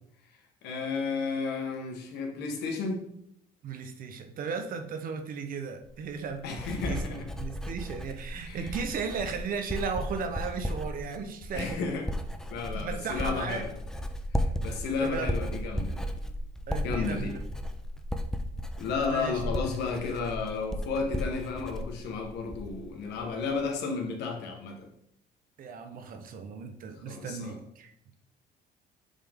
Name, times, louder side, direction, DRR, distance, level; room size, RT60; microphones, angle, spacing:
voice 1, 0.6-3.0 6.4-7.3 8.4-8.8 11.5-12.0 12.5-13.7 14.4-16.1 16.8-17.4 18.8-24.9 27.1-27.6, left 4 dB, 80° left, 3 dB, 1.3 m, -33 dB
voice 2, 3.6-11.8 12.7-13.6 14.7-15.3 16.7-17.4 19.1-19.5 25.6-28.1, right 5 dB, 55° right, 7 dB, 0.8 m, -36 dB
Writing, 5.8-22.9 23.2-23.6, equal, 5° left, 0.5 m, -35 dB
7.3 x 3.7 x 3.6 m, 0.72 s
cardioid pair, 110°, 17 cm